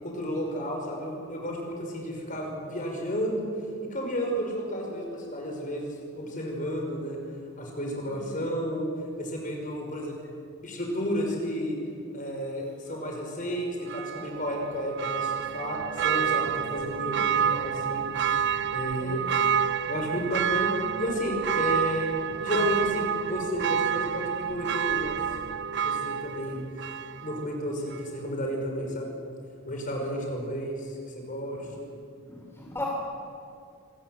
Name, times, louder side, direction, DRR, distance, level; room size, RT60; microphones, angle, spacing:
voice 1, 0.0-7.2 7.6-8.9 9.2-10.3 10.6-11.8 12.1-18.0 18.7-19.2 19.9-22.1 22.4-25.2 25.8-26.6 27.2-29.1 29.6-31.9, equal, 35° left, 1 dB, 5.6 m, -32 dB
voice 2, 8.1-8.4 17.2-17.3 19.0-19.2 32.2-32.8, left 1 dB, 10° left, -2 dB, 3.2 m, -38 dB
Church bell, 13.9-27.5 27.9-28.0, right 8 dB, 50° right, 0.6 m, -29 dB
26.5 x 20.0 x 8.0 m, 2.4 s
head